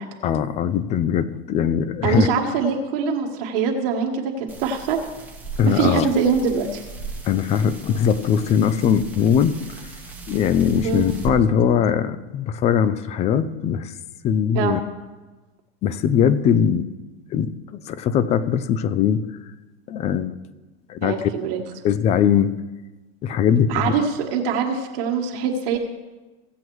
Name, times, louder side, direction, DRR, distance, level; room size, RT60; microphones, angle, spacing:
voice 1, 0.2-2.3 5.6-6.1 7.2-9.6 10.3-13.9 14.2-14.8 15.8-16.9 17.3-17.6 17.9-19.3 19.9-20.4 20.9-21.1 21.8-22.6 23.2-23.9, left 8 dB, 20° left, 15 dB, 0.3 m, -20 dB
voice 2, 2.0-5.0 5.7-6.8 10.8-11.0 14.5-14.8 21.0-21.6 23.7-25.8, right 6 dB, 65° right, 1 dB, 1.6 m, -23 dB
sound 1, 4.5-11.3, right 4 dB, 5° right, 1.2 m, -37 dB
16.5 x 7.8 x 3.1 m, 1.2 s
supercardioid pair, 130°, 32 cm